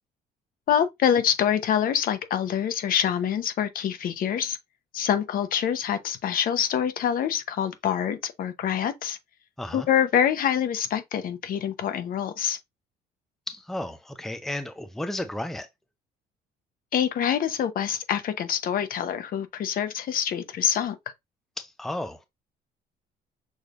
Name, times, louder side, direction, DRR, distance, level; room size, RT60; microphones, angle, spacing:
voice 1, 0.7-4.6 4.9-9.2 9.7-12.6 16.9-21.0, left 9 dB, 55° left, 0.9 m, -25 dB
voice 2, 13.5-15.7 21.6-22.3, left 1 dB, ahead, 0.6 m, -33 dB
6.3 x 3.3 x 2.5 m
cardioid pair, 110°, 17 cm